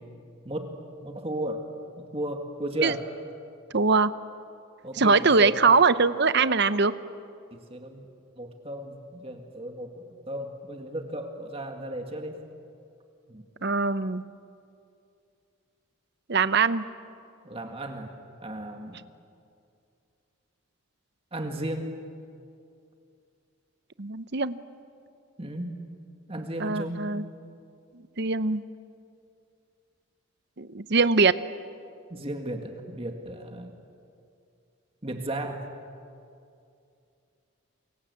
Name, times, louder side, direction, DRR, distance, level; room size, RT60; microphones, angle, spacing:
voice 1, 1.0-1.6 2.1-3.0 4.8-5.7 7.5-8.1 8.4-12.4 13.3-13.4 17.4-18.1 18.4-19.0 21.3-21.9 25.4-25.7 26.3-27.1 32.1-33.8 35.0-35.6, right 1 dB, 25° right, 4 dB, 1.9 m, -35 dB
voice 2, 3.7-4.1 4.9-6.9 13.6-14.2 16.3-16.8 24.0-24.6 26.6-27.2 28.2-28.6 30.6-31.3, right 4 dB, 50° right, 13 dB, 0.8 m, -22 dB
28.5 x 23.0 x 8.4 m, 2.5 s
head